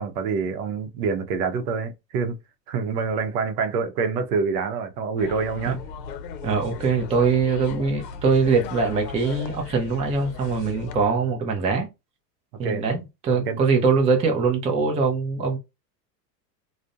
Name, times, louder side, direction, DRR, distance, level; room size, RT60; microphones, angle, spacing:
voice 1, 0.0-2.4 2.7-5.8 12.6-12.8 13.5-13.6, right 5 dB, 70° right, 0.7 m, -26 dB
sound 1, 5.2-11.1, left 6 dB, 80° left, 0.6 m, -37 dB
voice 2, 6.4-11.9 12.6-15.6, right 4 dB, 15° right, 0.4 m, -22 dB
2.4 x 2.1 x 2.4 m
hypercardioid pair, 100°, 49 cm